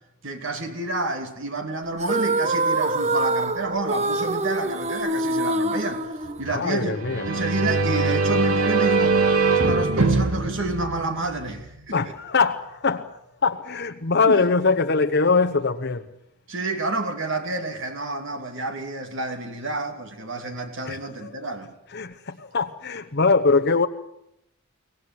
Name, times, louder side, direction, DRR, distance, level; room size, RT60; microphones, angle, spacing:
voice 1, 0.2-6.1 6.4-7.0 7.2-9.2 9.6-12.1 14.3-14.4 16.5-21.7, right 2 dB, 60° right, 2.7 m, -29 dB
sound 1, 2.0-6.8, right 2 dB, 30° right, 1.0 m, -25 dB
voice 2, 6.5-7.3 11.9-16.0 20.9-21.3 21.9-23.9, left 4 dB, 50° left, 1.0 m, -22 dB
sound 2, 6.9-11.7, right 3 dB, 85° right, 2.5 m, -22 dB
23.5 x 18.5 x 9.5 m
head